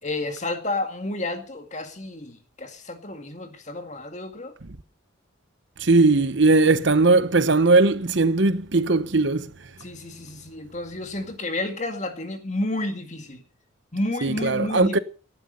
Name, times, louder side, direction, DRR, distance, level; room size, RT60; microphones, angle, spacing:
voice 1, 0.0-4.5 9.8-13.4 13.9-15.0, left 2 dB, 35° left, 2.1 m, -31 dB
voice 2, 5.8-9.5 14.2-15.0, right 3 dB, 60° right, 1.0 m, -19 dB
17.5 x 12.0 x 5.5 m
head